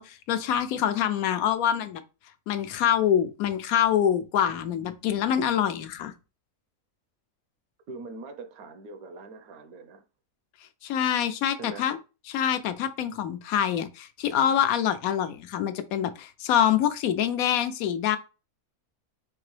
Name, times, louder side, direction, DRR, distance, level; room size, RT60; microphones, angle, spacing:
voice 1, 0.0-2.0 2.5-6.1 10.8-12.0 12.3-18.2, left 9 dB, 80° left, 1.0 m, -25 dB
voice 2, 7.9-10.0 11.6-11.9, right 3 dB, 85° right, 1.2 m, -42 dB
4.5 x 2.9 x 3.1 m
omnidirectional pair, 1.5 m